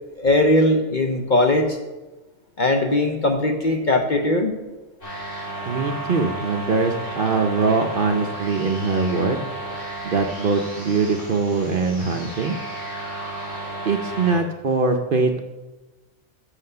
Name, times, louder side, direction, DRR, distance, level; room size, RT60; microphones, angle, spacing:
voice 1, 0.2-1.8 2.6-4.6, left 1 dB, 45° left, 4 dB, 0.7 m, -19 dB
sound 1, 5.0-14.4, right 2 dB, 65° left, 4.1 m, -33 dB
voice 2, 5.7-9.4 10.0-12.6 13.9-15.4, right 4 dB, 55° right, 5 dB, 0.7 m, -22 dB
7.7 x 6.4 x 6.6 m, 1.1 s
omnidirectional pair, 1.4 m